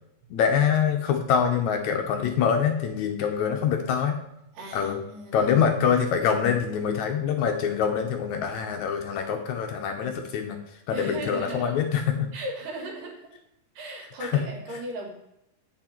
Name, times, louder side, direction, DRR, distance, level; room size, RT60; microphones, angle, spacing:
voice 1, 0.3-4.2 4.7-5.0 5.3-10.6 10.9-12.3 14.2-14.4, left 7 dB, 75° left, 4 dB, 2.0 m, -25 dB
voice 2, 4.5-5.5 10.9-11.7 12.3-13.3 13.8-15.1, right 1 dB, 85° right, -1 dB, 3.9 m, -37 dB
8.7 x 6.6 x 4.4 m, 0.81 s
omnidirectional pair, 3.8 m